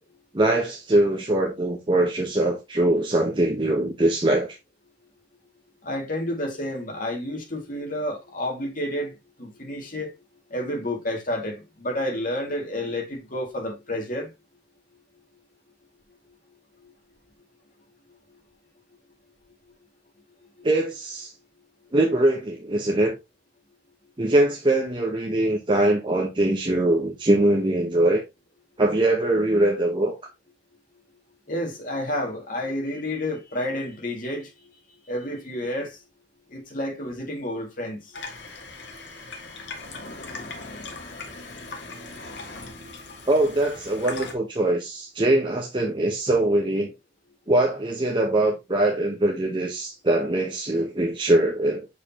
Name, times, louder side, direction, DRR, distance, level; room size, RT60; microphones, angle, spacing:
voice 1, 0.3-4.6 20.6-21.3 21.9-23.2 24.2-28.2 28.8-30.1 43.3-46.9 47.5-51.9, right 1 dB, 30° right, 1.0 m, -22 dB
voice 2, 5.8-10.1 10.5-14.3 31.5-34.5 35.1-36.0 36.5-38.2, left 1 dB, 50° left, 2.1 m, -30 dB
Water tap faucet / Sink (filling or washing), 38.1-44.3, left 3 dB, 80° left, 1.6 m, -39 dB
6.6 x 5.2 x 2.8 m
head